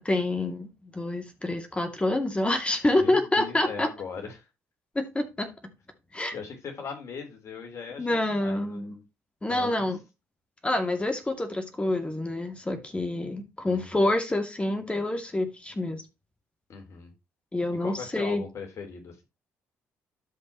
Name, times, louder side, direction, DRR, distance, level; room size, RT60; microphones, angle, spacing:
voice 1, 0.0-3.9 4.9-5.5 6.1-6.3 8.0-9.0 9.4-10.0 10.6-16.0 17.5-18.4, left 1 dB, 20° left, 2.4 m, -27 dB
voice 2, 3.0-4.5 6.3-9.0 9.5-9.9 13.6-14.0 16.7-17.1 17.8-19.2, left 5 dB, 55° left, 3.7 m, -39 dB
13.0 x 5.4 x 3.0 m
supercardioid pair, 60°, 6 cm